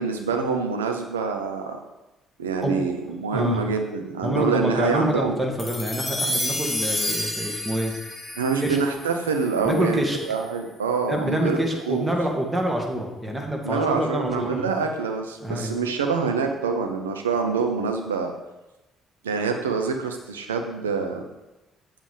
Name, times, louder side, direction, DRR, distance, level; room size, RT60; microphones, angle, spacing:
voice 1, 0.0-1.8 2.4-5.4 8.4-12.1 13.6-18.3 19.2-21.2, right 5 dB, 85° right, 4 dB, 0.8 m, -26 dB
voice 2, 3.3-3.6 4.2-7.9 8.6-8.8 9.6-10.2 11.0-14.7 15.4-15.8, right 1 dB, 15° right, 1 dB, 2.1 m, -26 dB
sound 1, 5.6-10.1, left 1 dB, 25° left, 3.5 m, -30 dB
7.5 x 7.3 x 5.1 m, 1.0 s
hypercardioid pair, 50°, 0 cm